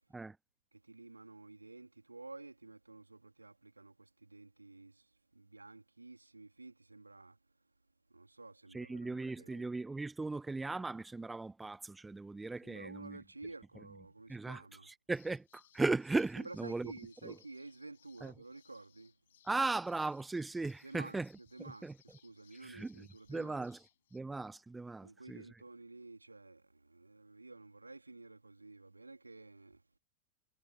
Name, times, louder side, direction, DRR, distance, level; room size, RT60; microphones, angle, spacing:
voice 1, 0.7-7.4 8.1-9.7 12.6-14.9 16.4-19.2 20.8-23.6 25.0-29.8, right 3 dB, 80° right, 3.9 m, -52 dB
voice 2, 8.7-13.2 14.3-16.9 17.2-17.4 18.2-18.3 19.4-21.3 21.6-21.9 22.6-23.8 24.1-25.4, right 3 dB, 10° right, 1.0 m, -37 dB
sound 1, 15.1-24.2, left 12 dB, 60° left, 5.8 m, -68 dB
figure-of-eight pair, 90°, 0 cm